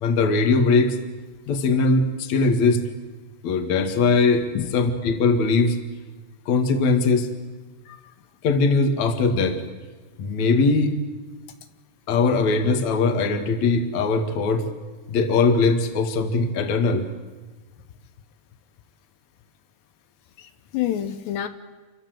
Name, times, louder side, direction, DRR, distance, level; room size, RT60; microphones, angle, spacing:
voice 1, 0.0-1.0 1.5-2.8 3.4-4.5 4.7-5.8 6.5-7.3 8.4-9.6 10.2-11.0 12.1-14.6 15.1-17.1, left 4 dB, 50° left, 6 dB, 2.8 m, -20 dB
voice 2, 20.4-21.5, left 11 dB, 80° left, 9 dB, 3.2 m, -28 dB
28.0 x 25.0 x 8.0 m, 1.3 s
omnidirectional pair, 4.9 m